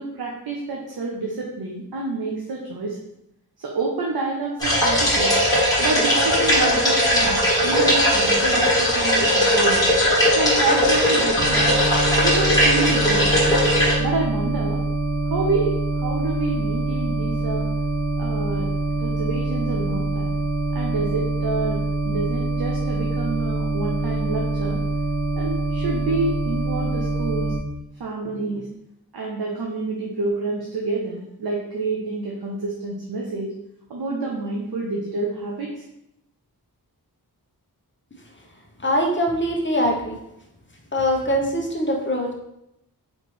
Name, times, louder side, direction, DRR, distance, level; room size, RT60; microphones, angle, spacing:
voice 1, 0.0-3.0 3.6-5.4 5.8-9.9 10.3-11.7 12.2-13.4 14.0-14.8 15.3-17.7 18.2-18.7 18.9-20.3 20.7-24.8 25.4-27.6 28.0-28.7 29.1-33.5 33.9-35.8, right 3 dB, 70° right, -2 dB, 0.7 m, -28 dB
sound 1, 4.6-13.9, equal, 10° left, 1.5 m, -19 dB
sound 2, 11.4-27.6, right 2 dB, 55° right, 1.1 m, -25 dB
voice 2, 38.8-40.1 40.9-42.3, equal, 30° left, 0 dB, 0.8 m, -22 dB
4.2 x 3.2 x 3.2 m, 0.82 s
wide cardioid pair, 80°, 39 cm